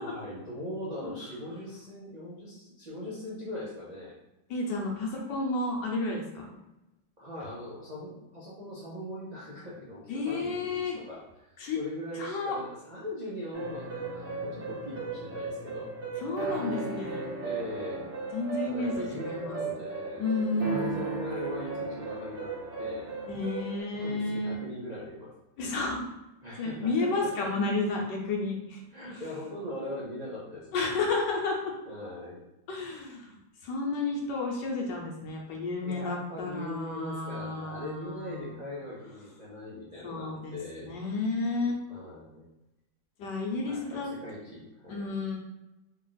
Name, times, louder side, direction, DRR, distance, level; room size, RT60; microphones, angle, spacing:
voice 1, 0.0-4.1 7.2-15.9 17.4-18.1 18.7-23.1 23.9-25.3 26.4-27.3 28.9-30.9 31.9-32.4 35.8-41.0 41.9-42.5 43.6-45.1, left 1 dB, 65° right, -7 dB, 0.4 m, -40 dB
voice 2, 4.5-6.5 10.1-11.0 11.6-11.8 12.1-12.6 16.2-17.2 18.3-19.6 20.2-20.9 23.3-24.5 25.6-26.1 26.6-29.2 30.7-31.7 32.7-33.4 33.6-38.6 40.0-40.6 40.8-41.8 43.2-44.1 44.9-45.4, left 3 dB, 75° left, -1 dB, 1.3 m, -31 dB
sound 1, 13.5-23.8, right 3 dB, 45° right, 0.8 m, -36 dB
3.3 x 2.4 x 3.9 m, 0.95 s
omnidirectional pair, 2.0 m